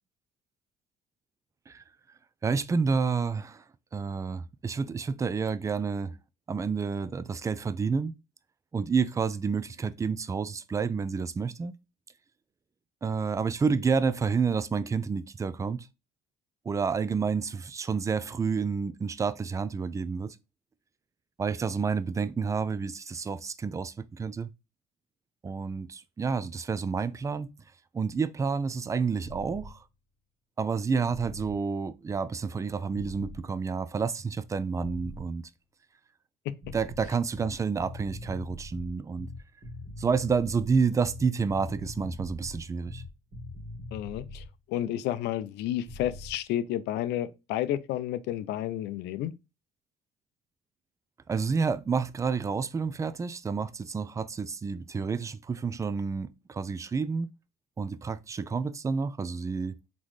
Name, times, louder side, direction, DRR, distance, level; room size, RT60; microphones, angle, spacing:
voice 1, 2.4-3.6 3.9-6.1 6.5-8.1 8.7-11.7 13.0-15.9 16.7-20.4 21.4-24.5 25.4-27.5 27.9-29.8 30.6-35.4 36.7-39.3 40.0-43.0 51.3-57.3 57.8-59.8, right 5 dB, 20° right, 0.3 m, -29 dB
sound 1, 29.2-29.7 31.1-31.6 32.9-33.4 34.8-35.2 36.6-44.5 45.9-46.3, left 1 dB, 45° right, 1.6 m, -42 dB
voice 2, 43.9-49.3, left 12 dB, 85° left, 0.5 m, -31 dB
4.0 x 3.8 x 3.1 m
cardioid pair, 110°, 17 cm